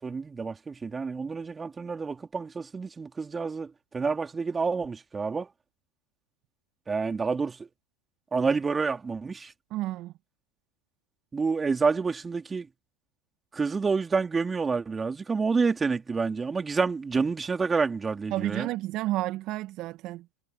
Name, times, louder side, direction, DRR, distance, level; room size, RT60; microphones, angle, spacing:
voice 1, 0.0-5.5 6.9-7.6 8.3-9.5 11.3-12.7 13.5-18.7, right 4 dB, 20° right, 3.5 m, -28 dB
voice 2, 9.7-10.1 18.3-20.2, right 16 dB, 50° right, 1.4 m, -31 dB
hypercardioid pair, 85°, 0 cm